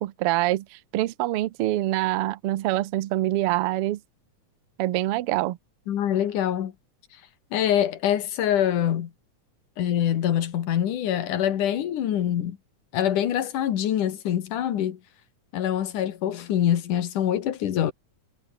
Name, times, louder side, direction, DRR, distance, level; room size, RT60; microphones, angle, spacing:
voice 1, 0.0-4.0 4.8-5.6, right 16 dB, 75° right, 1.3 m, -25 dB
voice 2, 5.9-6.7 7.5-9.1 9.8-12.6 12.9-15.0 15.5-17.9, left 10 dB, 75° left, 3.2 m, -24 dB
omnidirectional pair, 3.7 m